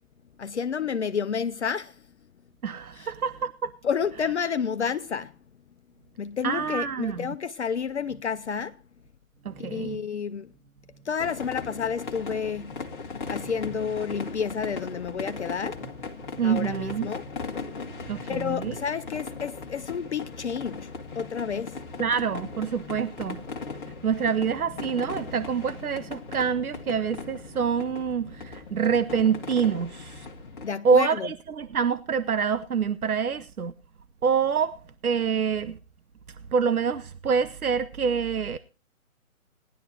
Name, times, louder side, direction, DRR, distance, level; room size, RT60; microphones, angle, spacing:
voice 1, 0.4-2.0 2.9-3.1 3.8-5.3 6.2-8.8 9.6-10.5 11.0-12.8 13.3-15.8 16.4-17.2 18.3-20.9 21.1-21.8 30.6-31.3, left 6 dB, 55° left, 0.6 m, -30 dB
voice 2, 2.6-3.7 6.4-7.3 9.4-10.0 16.4-17.1 18.1-18.7 22.0-23.4 24.0-30.3 30.8-33.7 34.2-35.8 36.5-38.6, right 6 dB, 90° right, 0.7 m, -26 dB
sound 1, 11.2-30.7, left 4 dB, 35° left, 1.4 m, -38 dB
18.5 x 11.0 x 2.9 m
figure-of-eight pair, 145°, 42 cm